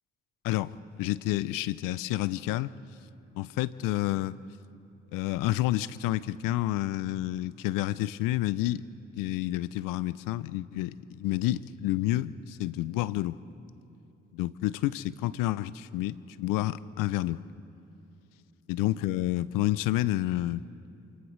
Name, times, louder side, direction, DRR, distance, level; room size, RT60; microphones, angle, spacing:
voice 1, 0.4-2.7 3.4-4.4 5.1-8.8 9.1-13.4 14.3-17.4 18.7-20.6, left 15 dB, 80° left, 18 dB, 0.5 m, -29 dB
29.0 x 28.0 x 3.2 m, 2.8 s
hypercardioid pair, 45°, 32 cm